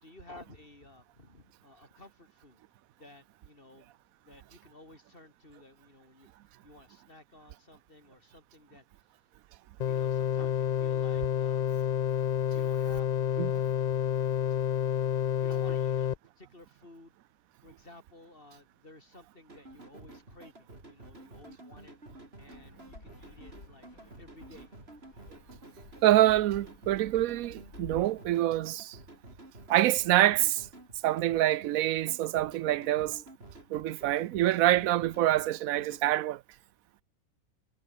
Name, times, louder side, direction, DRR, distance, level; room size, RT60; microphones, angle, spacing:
voice 1, 0.0-2.6 3.0-3.9 4.2-6.3 6.6-8.8 9.8-11.7 12.5-14.3 15.3-17.1 17.6-21.9 22.4-23.9 24.2-24.7, left 2 dB, 40° left, 4.3 m, -54 dB
sound 1, 9.8-16.1, left 9 dB, 70° left, 0.4 m, -29 dB
sound 2, 19.5-36.1, right 1 dB, 45° right, 6.1 m, -51 dB
Fixed-wing aircraft airplane, 22.5-28.0, left 2 dB, 85° left, 5.1 m, -51 dB
voice 2, 26.0-29.0 29.7-30.7 31.0-33.2 33.7-36.4, right 14 dB, 80° right, 1.0 m, -26 dB
omnidirectional pair, 1.5 m